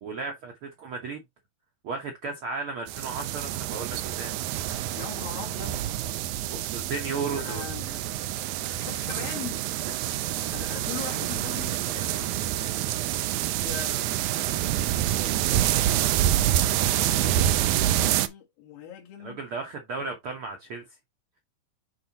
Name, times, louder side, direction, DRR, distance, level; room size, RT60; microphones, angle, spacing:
voice 1, 0.0-1.2 1.8-4.3 6.5-7.9 8.3-8.8 19.2-20.8, right 4 dB, 70° right, 1.3 m, -35 dB
sound 1, 2.9-18.3, right 13 dB, 85° right, 1.7 m, -27 dB
voice 2, 4.9-5.9 7.3-8.0 8.8-10.0 10.5-12.4 13.6-14.5 15.0-16.2 16.8-19.4, left 9 dB, 85° left, 3.4 m, -41 dB
9.7 x 4.0 x 2.9 m
omnidirectional pair, 4.0 m